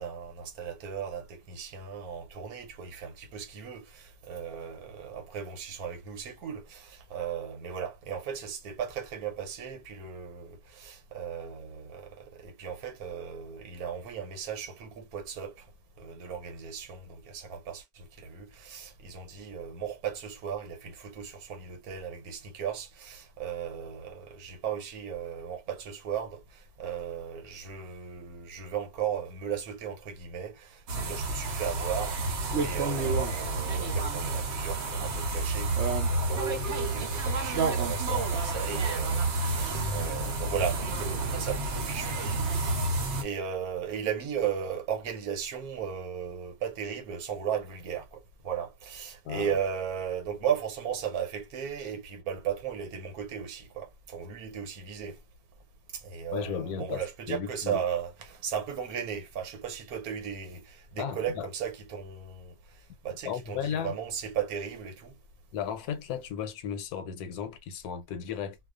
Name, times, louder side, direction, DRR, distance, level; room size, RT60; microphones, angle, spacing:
voice 1, 0.0-15.7 16.0-55.2 55.9-62.5 63.0-65.2, right 8 dB, 80° right, 1.2 m, -36 dB
sound 1, 30.9-43.2, right 3 dB, 55° right, 0.9 m, -29 dB
voice 2, 56.3-57.8 61.0-61.5 63.2-63.9 65.5-68.6, left 8 dB, 80° left, 1.1 m, -35 dB
2.4 x 2.3 x 2.3 m
omnidirectional pair, 1.6 m